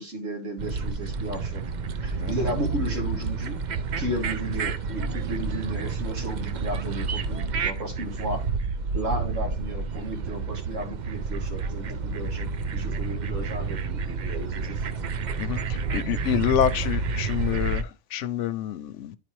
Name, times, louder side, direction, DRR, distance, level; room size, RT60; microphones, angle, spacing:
voice 1, 0.0-1.6 2.0-3.6 4.0-8.4 8.9-14.8, equal, 85° right, 2.1 m, -34 dB
sound 1, 0.6-17.8, right 4 dB, 60° right, 0.4 m, -29 dB
voice 2, 2.2-2.5 15.4-19.2, left 10 dB, 75° left, 0.9 m, -27 dB
9.9 x 4.2 x 3.0 m
omnidirectional pair, 1.3 m